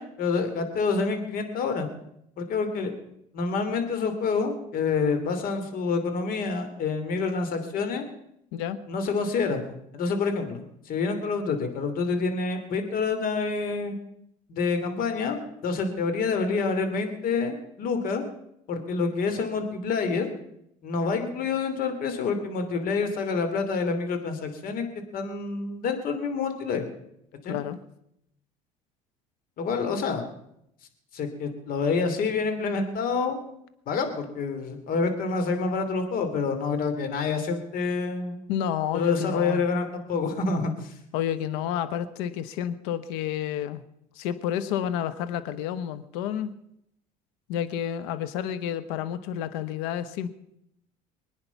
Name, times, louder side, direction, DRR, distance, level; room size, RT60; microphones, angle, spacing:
voice 1, 0.0-1.9 2.4-2.9 3.3-8.0 8.9-9.6 9.9-13.9 14.5-18.2 18.7-20.3 20.8-24.9 25.1-26.8 27.4-27.6 29.6-30.2 31.1-33.4 33.9-38.4 38.9-40.9, left 4 dB, 55° left, 7 dB, 2.8 m, -27 dB
voice 2, 27.5-27.8 38.5-39.6 41.1-43.8 44.2-46.5 47.5-50.3, left 10 dB, 80° left, 12 dB, 1.0 m, -30 dB
22.0 x 9.6 x 5.9 m, 0.77 s
supercardioid pair, 85°, 17 cm